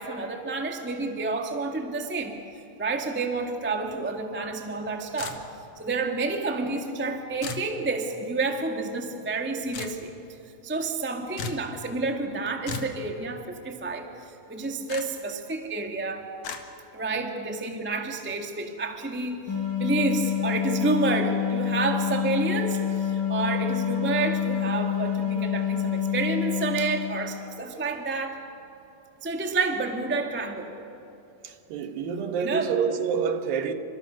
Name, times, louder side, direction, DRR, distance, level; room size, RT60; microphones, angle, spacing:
voice 1, 0.0-2.4 2.8-5.4 5.8-10.1 10.6-16.3 16.9-19.4 19.8-28.4 29.2-30.7 32.4-32.7, right 3 dB, 10° right, 0.7 m, -29 dB
sound 1, 5.2-5.7 7.4-7.7 9.7-10.0 11.4-11.7 12.6-13.0 14.9-15.0 16.4-16.6, left 5 dB, 55° left, 2.7 m, -35 dB
sound 2, 19.5-27.6, left 9 dB, 80° left, 6.8 m, -27 dB
voice 2, 31.4-33.7, right 6 dB, 85° right, 3.1 m, -28 dB
30.0 x 26.0 x 6.4 m
omnidirectional pair, 3.9 m